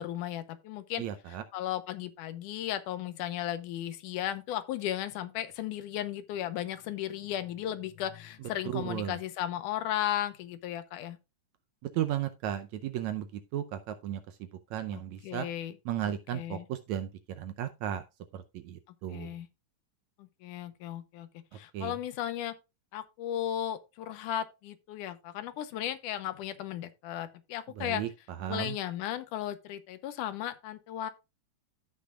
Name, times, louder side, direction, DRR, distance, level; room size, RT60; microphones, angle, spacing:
voice 1, 0.0-1.0 1.5-11.2 14.9-15.7 16.3-16.6 19.1-19.5 20.2-22.5 22.9-28.0 28.5-31.1, left 11 dB, 80° left, 2.3 m, -35 dB
voice 2, 1.0-1.4 8.4-9.2 11.8-15.5 15.9-18.0 18.3-19.4 21.7-22.0 27.7-28.8, right 11 dB, 75° right, 1.8 m, -35 dB
15.0 x 6.0 x 2.4 m
omnidirectional pair, 3.8 m